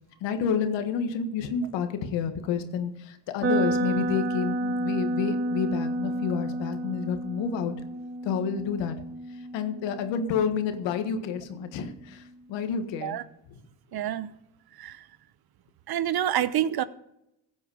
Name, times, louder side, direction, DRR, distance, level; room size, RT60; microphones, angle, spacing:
voice 1, 0.2-7.7 8.2-8.9 9.5-12.2 12.5-13.2 13.5-13.6, left 6 dB, 85° left, 1.6 m, -29 dB
sound 1, 3.4-11.3, right 1 dB, 30° right, 2.5 m, -31 dB
voice 2, 13.9-14.3 14.8-15.0 15.9-16.8, right 11 dB, 60° right, 0.9 m, -27 dB
15.5 x 8.4 x 5.0 m
supercardioid pair, 75°, 43 cm